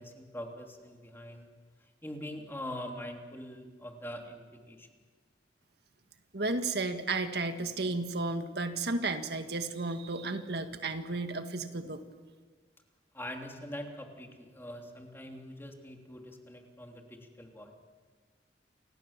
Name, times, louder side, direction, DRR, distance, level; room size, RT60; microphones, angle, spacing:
voice 1, 0.0-1.5 2.0-4.9 13.1-17.7, left 1 dB, 15° left, 2 dB, 3.3 m, -43 dB
voice 2, 6.3-12.0, right 3 dB, 65° right, 7 dB, 1.8 m, -33 dB
30.0 x 26.5 x 7.5 m, 1.5 s
head